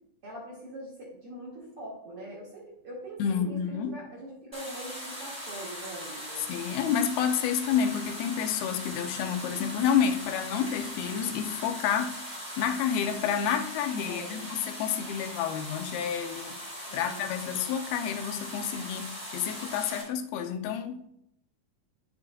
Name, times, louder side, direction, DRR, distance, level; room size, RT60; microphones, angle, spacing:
voice 1, 0.2-6.5 14.1-14.4 16.8-17.6, right 1 dB, 50° right, 1.9 m, -43 dB
voice 2, 3.2-4.0 6.5-12.2 12.6-16.6 16.9-21.1, left 8 dB, 85° left, 2.5 m, -29 dB
sound 1, 4.5-20.0, equal, 5° left, 2.3 m, -40 dB
10.5 x 5.7 x 2.2 m
omnidirectional pair, 4.2 m